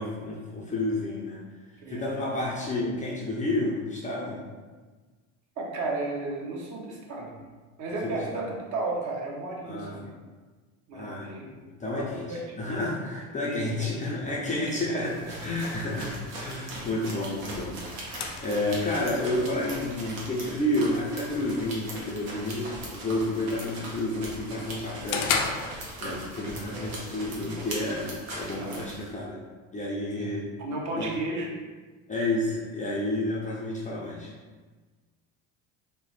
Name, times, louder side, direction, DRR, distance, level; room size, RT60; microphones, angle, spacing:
voice 1, 0.0-1.4 1.9-4.4 8.0-8.4 9.6-10.1 10.9-29.4 29.7-30.4 31.0-31.1 32.1-34.3, left 1 dB, 20° left, -5 dB, 0.4 m, -30 dB
voice 2, 1.8-2.4 5.6-7.4 7.8-10.1 10.9-11.5 11.8-12.6 13.4-13.9 14.2-15.1 15.9-16.2 16.8-16.9 26.7-27.1 28.5-28.9 30.2-31.5, right 2 dB, 40° right, -1 dB, 0.7 m, -35 dB
sound 1, 15.0-29.1, right 1 dB, 70° right, 0.9 m, -40 dB
sound 2, 17.3-26.3, left 5 dB, 75° left, 0.5 m, -37 dB
2.9 x 2.0 x 3.0 m, 1.4 s
hypercardioid pair, 80°, 44 cm